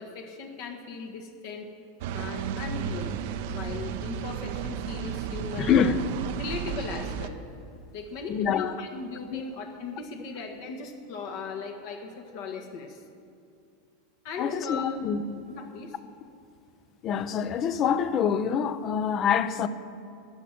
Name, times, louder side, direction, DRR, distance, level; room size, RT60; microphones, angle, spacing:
voice 1, 0.0-1.7 2.1-3.1 3.4-6.0 6.3-7.4 7.9-13.0 14.2-15.0 15.5-16.0, left 4 dB, 60° left, 1.4 m, -38 dB
sound 1, 2.0-7.3, right 8 dB, 65° right, 0.7 m, -33 dB
voice 2, 5.6-6.0 8.3-8.7 9.3-9.4 14.4-15.4 17.0-19.7, left 7 dB, 35° left, 0.6 m, -26 dB
12.0 x 9.0 x 6.0 m
supercardioid pair, 125°, 0 cm